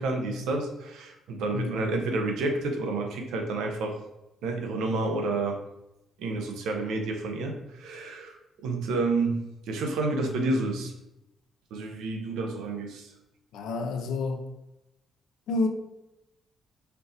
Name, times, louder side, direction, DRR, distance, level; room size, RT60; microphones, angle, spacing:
voice 1, 0.0-4.0 4.4-5.6 6.2-9.4 9.7-10.9 11.7-13.1, right 2 dB, 85° right, 0.7 m, -29 dB
voice 2, 1.5-1.9 13.5-14.5 15.5-15.7, left 3 dB, 80° left, 0.6 m, -29 dB
4.5 x 2.6 x 3.9 m
cardioid pair, 90°, 0 cm